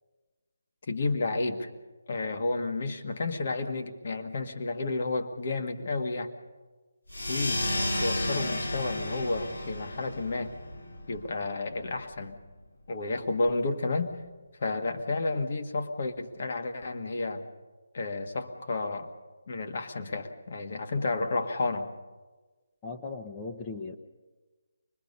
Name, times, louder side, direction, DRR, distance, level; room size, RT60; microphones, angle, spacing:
voice 1, 0.9-1.7 2.1-6.3 7.3-7.7 8.0-10.5 11.1-12.4 12.9-14.1 14.6-17.5 17.9-19.1 19.5-21.9, left 3 dB, 50° left, 6 dB, 1.8 m, -31 dB
sound 1, 7.1-12.2, left 1 dB, 85° left, 2.7 m, -33 dB
voice 2, 22.8-24.0, left 4 dB, 20° left, 1 dB, 1.1 m, -38 dB
24.5 x 21.0 x 5.5 m, 1.3 s
figure-of-eight pair, 155°, 0 cm